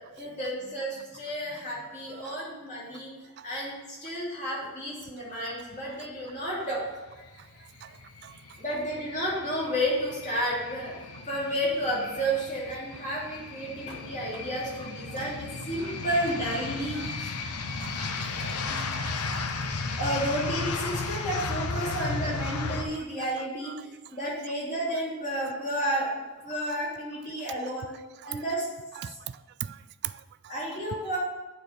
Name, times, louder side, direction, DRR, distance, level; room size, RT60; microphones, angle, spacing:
voice 1, 0.2-3.1 3.4-6.9 8.6-17.3 18.7-18.9 20.0-26.2 26.4-27.9 28.2-28.6 29.0-29.1 30.5-31.2, equal, 35° left, 3.2 m, -31 dB
sound 1, 7.1-22.8, left 4 dB, 80° left, 0.7 m, -35 dB
voice 2, 17.8-18.2 18.4-18.7 18.9-19.5 21.1-21.2 28.2-28.4 29.0-29.2 29.6-30.5, right 11 dB, 50° right, 0.3 m, -40 dB
8.8 x 4.4 x 6.7 m
head